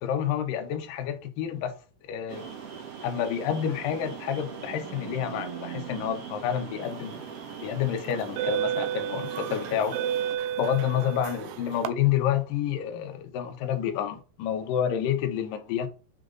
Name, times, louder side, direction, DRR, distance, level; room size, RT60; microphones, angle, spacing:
voice 1, 0.0-1.7 2.1-2.5 3.0-7.2 7.6-10.0 10.6-15.9, left 9 dB, 70° left, 2.2 m, -29 dB
sound 1, 2.3-10.4, right 7 dB, 60° right, 1.7 m, -40 dB
sound 2, 7.1-7.3 8.1-11.9, right 10 dB, 80° right, 2.5 m, -31 dB
8.8 x 3.4 x 3.9 m
omnidirectional pair, 5.0 m